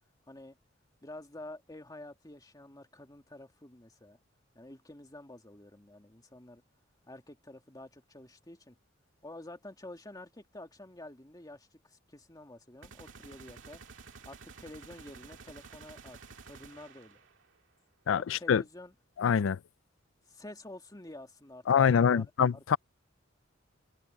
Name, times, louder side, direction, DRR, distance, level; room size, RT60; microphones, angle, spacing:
voice 1, 1.0-4.2 4.5-6.6 7.1-8.8 9.2-13.8 14.2-16.2 16.5-17.2 18.2-18.9 20.3-22.3, left 1 dB, 20° left, 2.3 m, -49 dB
sound 1, 12.8-17.6, right 4 dB, 70° right, 2.2 m, -51 dB
voice 2, 18.1-18.6 19.2-19.6 21.7-22.8, left 7 dB, 75° left, 0.4 m, -25 dB
head